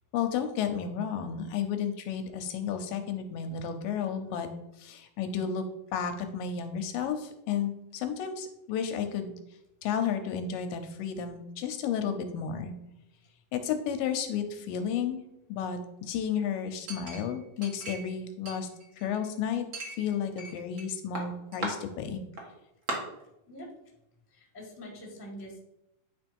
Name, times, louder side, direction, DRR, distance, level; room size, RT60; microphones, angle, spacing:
voice 1, 0.1-4.5 4.8-5.6 5.9-9.3 9.8-12.7 13.5-15.2 15.5-15.8 16.1-18.7 19.0-19.7 19.9-22.2, left 7 dB, 80° left, 6 dB, 2.3 m, -32 dB
Chink clink, 16.9-18.2 18.5-19.2 19.7-20.9 21.2-21.7 22.4-22.5 22.9-23.0, right 2 dB, 55° right, 1.0 m, -38 dB
voice 2, 24.3-25.6, equal, 10° left, -2 dB, 0.8 m, -44 dB
9.3 x 3.3 x 5.3 m, 0.85 s
omnidirectional pair, 4.1 m